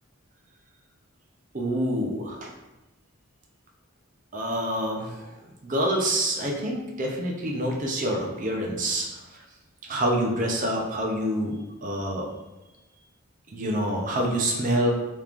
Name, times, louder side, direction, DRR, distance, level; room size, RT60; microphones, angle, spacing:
voice 1, 1.5-2.5 4.3-5.3 5.6-9.4 9.9-12.3 13.5-14.9, right 1 dB, 35° right, -1 dB, 0.5 m, -27 dB
3.5 x 3.0 x 2.4 m, 1.0 s
head